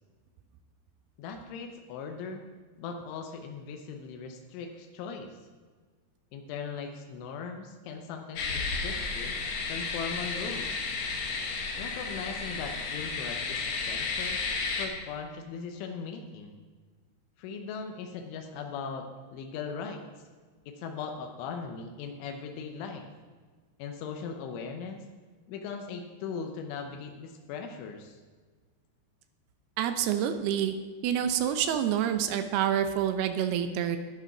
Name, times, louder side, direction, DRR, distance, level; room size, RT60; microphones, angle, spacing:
voice 1, 1.2-2.4 2.8-5.4 6.3-9.4 9.7-10.9 11.8-14.4 14.8-16.6 17.4-20.0 20.7-23.1 23.8-25.0 25.5-28.2, left 5 dB, 90° left, 4 dB, 3.4 m, -39 dB
sound 1, 8.4-14.9, left 4 dB, 60° left, 2.6 m, -33 dB
voice 2, 29.8-30.7 31.0-34.0, right 9 dB, 80° right, 8 dB, 2.4 m, -27 dB
11.5 x 10.0 x 6.0 m, 1.5 s
omnidirectional pair, 5.3 m